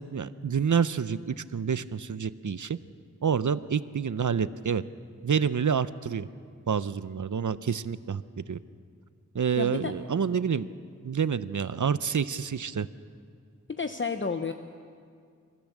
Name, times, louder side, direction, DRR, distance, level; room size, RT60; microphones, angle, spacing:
voice 1, 0.0-2.8 3.2-4.8 5.2-6.3 6.7-8.2 8.5-8.6 9.3-10.7 11.0-12.9, right 6 dB, 70° right, 15 dB, 0.7 m, -28 dB
voice 2, 9.6-9.9 13.7-14.5, left 4 dB, 40° left, 7 dB, 0.8 m, -31 dB
29.0 x 14.0 x 7.3 m, 2.2 s
wide cardioid pair, 55°, 31 cm